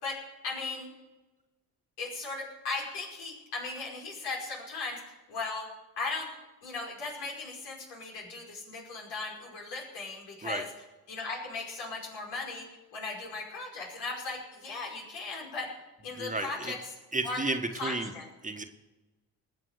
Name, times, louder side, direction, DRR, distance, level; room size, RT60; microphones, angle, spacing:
voice 1, 0.0-0.9 2.0-5.0 5.3-5.7 6.0-6.3 6.6-10.7 11.1-12.7 12.9-15.7 16.0-16.8 17.2-17.4 17.8-18.3, left 3 dB, 75° left, -2 dB, 5.4 m, -37 dB
voice 2, 16.1-16.7 17.1-18.1 18.4-18.6, right 2 dB, 20° right, 6 dB, 1.6 m, -32 dB
20.0 x 7.5 x 6.6 m, 1.1 s
hypercardioid pair, 55°, 40 cm